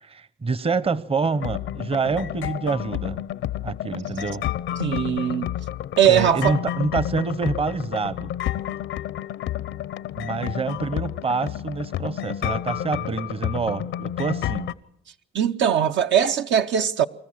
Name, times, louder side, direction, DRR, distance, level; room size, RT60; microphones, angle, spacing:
voice 1, 0.0-3.2 3.6-4.4 6.1-8.3 10.2-14.7, right 4 dB, 30° right, 0.8 m, -27 dB
sound 1, 1.3-14.7, left 11 dB, 80° left, 0.7 m, -30 dB
voice 2, 4.8-5.5 6.0-6.6 15.3-17.1, right 9 dB, 65° right, 0.7 m, -20 dB
26.0 x 14.0 x 7.3 m
cardioid pair, 90°, 20 cm